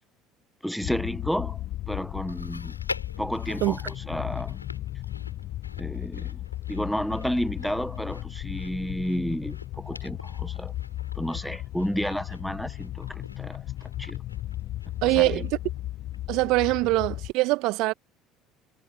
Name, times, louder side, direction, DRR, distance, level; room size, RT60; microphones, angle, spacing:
voice 1, 0.6-2.7 3.2-4.6 5.8-10.7 11.1-13.6 14.0-14.2 15.0-15.5, equal, ahead, 1.0 m, -31 dB
sound 1, 0.8-17.3, left 14 dB, 50° left, 1.2 m, -35 dB
Chewing mastication, 2.3-15.8 16.1-16.2 17.1-17.2, left 3 dB, 85° left, 3.5 m, -45 dB
voice 2, 15.0-15.5 16.3-17.9, right 22 dB, 55° right, 2.0 m, -23 dB
figure-of-eight pair, 60°, 0 cm